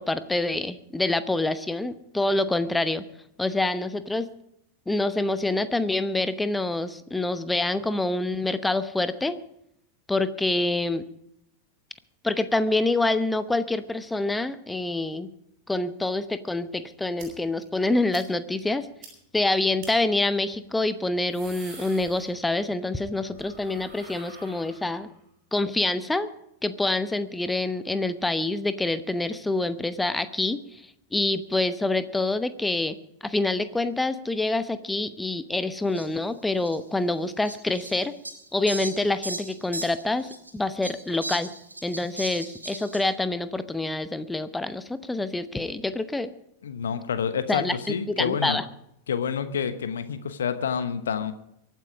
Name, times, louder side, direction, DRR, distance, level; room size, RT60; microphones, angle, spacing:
voice 1, 0.0-3.0 3.4-4.3 4.9-9.4 10.1-11.0 12.2-15.3 15.7-18.9 19.3-25.1 25.5-26.3 26.6-30.8 31.1-33.0 33.2-38.1 38.5-41.5 41.8-46.3 47.5-48.6, left 2 dB, 5° left, 12 dB, 0.9 m, -26 dB
sound 1, 17.2-17.3 17.6-17.7 18.1-18.3 18.6-18.7 19.0-19.1 19.8-19.9 21.0-22.7 23.0-25.2, right 3 dB, 40° right, 7.3 m, -46 dB
Fowl, 35.9-36.1 36.6-36.8 37.4-40.5 40.8-43.0, right 2 dB, 85° right, 1.9 m, -37 dB
voice 2, 46.6-48.6 49.1-51.3, left 7 dB, 65° left, 11 dB, 1.1 m, -28 dB
23.5 x 9.2 x 5.0 m, 0.77 s
figure-of-eight pair, 90°, 0 cm